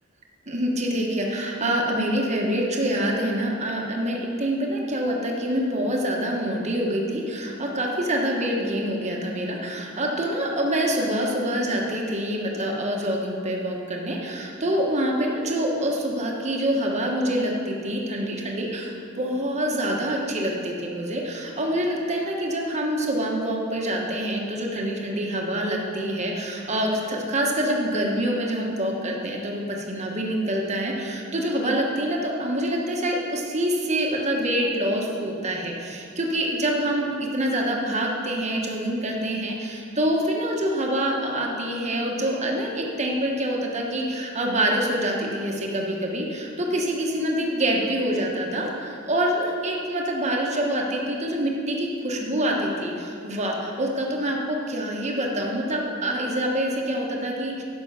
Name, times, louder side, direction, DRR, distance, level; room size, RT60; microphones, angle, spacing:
voice 1, 0.5-57.6, right 1 dB, 35° right, -1 dB, 1.2 m, -26 dB
10.0 x 6.1 x 5.9 m, 2.5 s
head